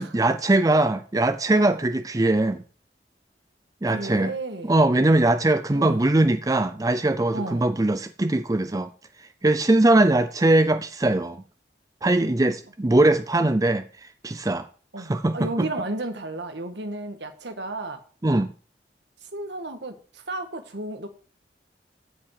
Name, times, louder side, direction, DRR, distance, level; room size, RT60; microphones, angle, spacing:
voice 1, 0.0-2.6 3.8-4.3 4.6-8.9 9.4-11.4 12.0-13.8 14.2-14.7 15.0-15.7 18.2-18.5, right 2 dB, 20° right, 0.5 m, -21 dB
voice 2, 3.8-4.8 5.7-6.1 7.3-7.7 14.9-18.0 19.2-21.1, right 2 dB, 75° right, 1.6 m, -33 dB
15.5 x 5.3 x 4.7 m
head